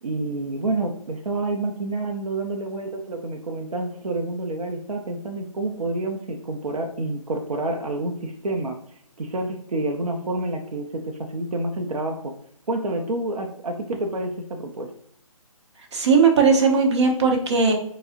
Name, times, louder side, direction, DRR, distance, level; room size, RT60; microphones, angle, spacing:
voice 1, 0.0-8.8 9.2-12.3 12.7-14.9, right 2 dB, 85° right, 2 dB, 0.6 m, -28 dB
voice 2, 15.9-17.7, right 5 dB, 50° right, 1 dB, 0.8 m, -18 dB
4.7 x 2.1 x 2.5 m, 0.69 s
figure-of-eight pair, 150°, 18 cm